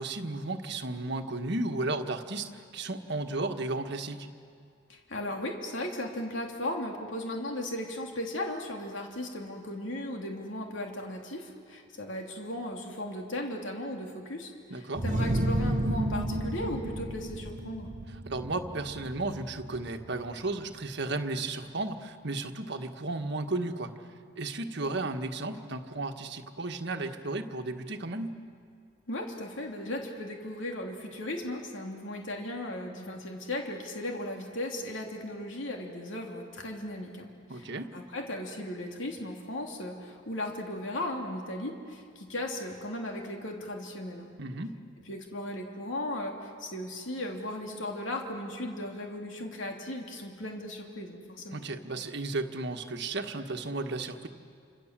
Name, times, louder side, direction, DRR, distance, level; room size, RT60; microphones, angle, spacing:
voice 1, 0.0-4.3 14.7-15.0 18.1-28.3 37.5-37.9 44.4-44.7 51.5-54.3, right 2 dB, 60° right, 5 dB, 1.6 m, -34 dB
voice 2, 4.9-17.9 29.1-44.3 45.1-51.6, left 1 dB, 70° left, 1 dB, 3.1 m, -36 dB
sound 1, 15.0-20.5, right 1 dB, 40° right, 1.0 m, -32 dB
29.5 x 26.5 x 7.6 m, 2.3 s
head